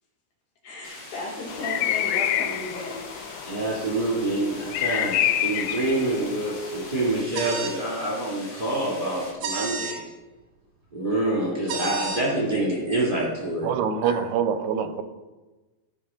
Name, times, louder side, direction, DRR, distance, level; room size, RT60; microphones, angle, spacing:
voice 1, 0.6-3.2, left 1 dB, 60° left, -2 dB, 3.1 m, -35 dB
sound 1, 0.8-9.3, left 2 dB, 40° left, 1.4 m, -43 dB
sound 2, 1.5-7.2, left 11 dB, 80° left, 2.2 m, -28 dB
voice 2, 3.4-10.0 10.9-13.7 14.0-14.2, right 2 dB, 20° right, -6 dB, 1.5 m, -26 dB
sound 3, 7.3-7.8 9.4-10.0 11.7-12.2, right 5 dB, 70° right, 1.8 m, -30 dB
voice 3, 13.6-15.0, right 7 dB, 90° right, 11 dB, 2.6 m, -25 dB
16.0 x 5.6 x 3.7 m, 1.2 s
omnidirectional pair, 4.3 m